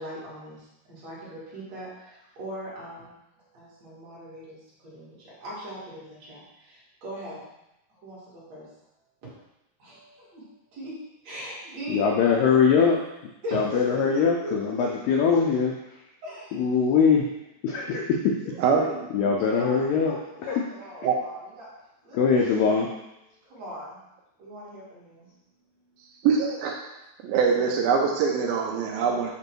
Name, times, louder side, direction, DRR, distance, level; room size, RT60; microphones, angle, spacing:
voice 1, 0.0-3.2 3.5-7.5 7.9-8.7 9.8-10.9 11.2-12.9 13.4-14.9 16.2-16.6 18.4-18.9 19.4-21.7 22.0-22.8 23.4-24.0 24.4-25.3 25.7-26.1, right 1 dB, 50° right, -8 dB, 2.8 m, -40 dB
voice 2, 11.9-13.0 13.5-15.7 16.5-17.2 17.6-18.4 19.1-20.6 22.1-22.9, left 6 dB, 85° left, 0 dB, 1.9 m, -22 dB
voice 3, 18.6-19.7 21.0-21.2 26.2-26.8 27.2-29.3, right 6 dB, 80° right, 1 dB, 2.4 m, -24 dB
8.4 x 3.0 x 4.5 m, 0.91 s
omnidirectional pair, 4.5 m